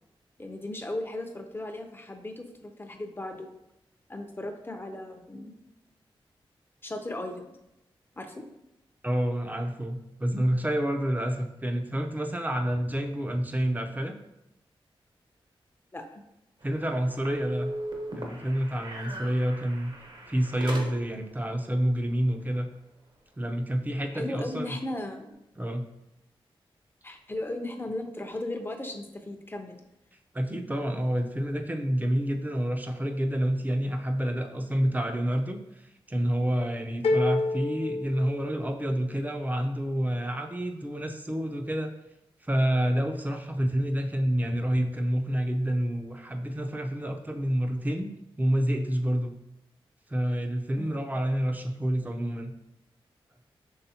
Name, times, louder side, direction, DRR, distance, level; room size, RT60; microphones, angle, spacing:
voice 1, 0.4-3.5 4.1-5.5 6.8-7.5 8.2-8.4 15.9-16.2 24.1-25.4 27.0-29.8 50.8-51.0, left 1 dB, 25° left, 4 dB, 0.7 m, -36 dB
voice 2, 9.0-14.1 16.6-17.7 18.1-19.9 20.3-22.7 23.4-24.8 25.6-25.9 30.3-41.9 42.4-48.1 48.4-49.3 50.1-52.5, equal, 15° right, 4 dB, 0.6 m, -28 dB
sound 1, 16.6-21.3, right 1 dB, 55° right, 1.0 m, -38 dB
sound 2, 37.0-39.0, left 2 dB, 90° left, 0.4 m, -28 dB
5.7 x 3.2 x 2.8 m, 0.87 s
cardioid pair, 55°, 10 cm